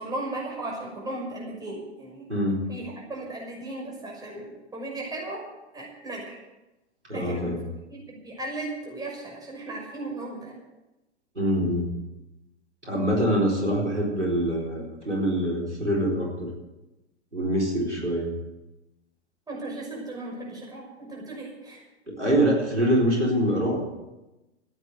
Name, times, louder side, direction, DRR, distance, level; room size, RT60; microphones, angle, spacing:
voice 1, 0.0-2.3 2.7-5.4 5.7-6.4 7.1-7.6 7.9-10.6 19.5-21.8, right 2 dB, 10° right, -2 dB, 6.0 m, -36 dB
voice 2, 2.3-2.6 7.1-7.6 11.4-11.9 12.8-16.5 17.3-18.3 22.1-23.8, equal, 85° right, -2 dB, 4.3 m, -24 dB
14.5 x 10.0 x 8.0 m, 1.0 s
figure-of-eight pair, 100°, 34 cm